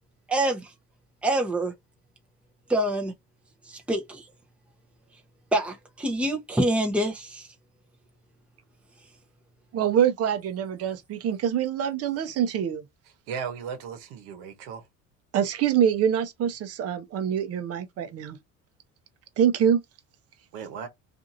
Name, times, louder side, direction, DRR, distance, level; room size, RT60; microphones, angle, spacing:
voice 1, 0.3-0.7 1.2-1.7 2.7-3.1 3.7-4.2 5.5-7.5, right 1 dB, 5° right, 0.7 m, -26 dB
voice 2, 9.7-12.8 15.3-18.4 19.4-19.8, right 9 dB, 50° right, 0.7 m, -25 dB
voice 3, 13.3-14.9 20.5-20.9, right 6 dB, 90° right, 1.0 m, -36 dB
2.7 x 2.6 x 2.6 m
cardioid pair, 115°, 31 cm